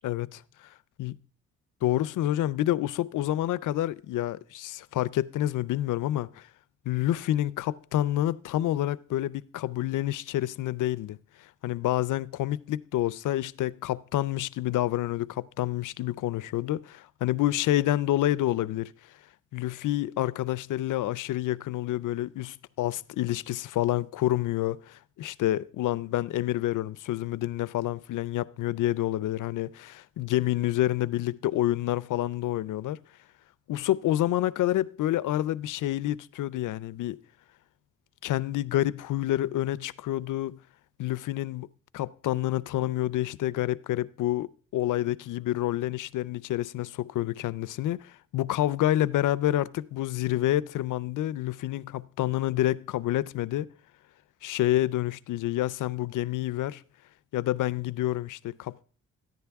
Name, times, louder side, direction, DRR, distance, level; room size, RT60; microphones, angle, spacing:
voice 1, 0.0-0.4 1.0-1.1 1.8-6.5 6.9-11.2 11.6-18.9 19.5-33.0 33.7-37.2 38.2-40.6 41.0-41.7 41.9-53.7 54.4-56.8 57.3-58.8, left 14 dB, 75° left, 0.5 m, -28 dB
14.5 x 10.5 x 3.5 m
cardioid pair, 130°, 31 cm